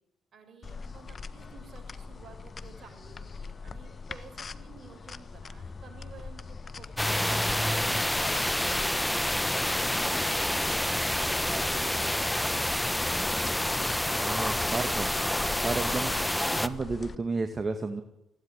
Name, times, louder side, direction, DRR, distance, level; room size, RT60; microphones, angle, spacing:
voice 1, 0.3-9.1 9.6-11.1, right 6 dB, 50° right, 4 dB, 7.3 m, -53 dB
sound 1, 0.6-17.1, left 4 dB, 40° left, 1.4 m, -43 dB
sound 2, 7.0-16.7, left 1 dB, 5° left, 1.2 m, -28 dB
voice 2, 14.2-15.1 15.6-16.1 16.5-18.0, right 3 dB, 35° right, 8 dB, 2.0 m, -32 dB
21.0 x 16.5 x 9.9 m, 0.87 s
hypercardioid pair, 50°, 0 cm